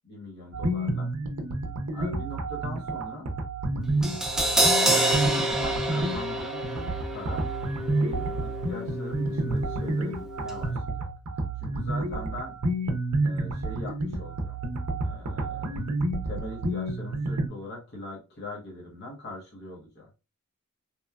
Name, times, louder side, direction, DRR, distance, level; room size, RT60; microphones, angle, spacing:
voice 1, 0.1-1.1 1.9-3.3 4.5-5.1 5.5-7.5 8.0-11.1 11.6-12.5 13.2-14.6 15.0-15.8 16.2-20.1, left 1 dB, 50° left, -3 dB, 0.8 m, -41 dB
sound 1, 0.5-17.5, right 2 dB, 85° right, 0.5 m, -30 dB
Crash cymbal, 4.0-10.2 10.5-10.6, right 1 dB, ahead, 0.3 m, -28 dB
2.9 x 2.2 x 2.2 m, 0.29 s
head